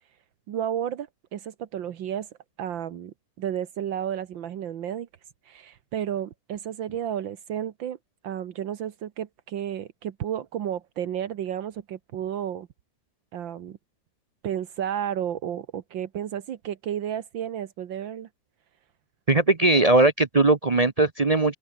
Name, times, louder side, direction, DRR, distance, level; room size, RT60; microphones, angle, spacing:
voice 1, 0.5-2.3 2.6-5.1 5.5-8.0 8.2-12.7 13.3-13.8 14.4-18.3, right 10 dB, 75° right, 1.9 m, -32 dB
voice 2, 19.3-21.5, right 2 dB, 45° right, 0.5 m, -19 dB
open air
omnidirectional pair, 2.1 m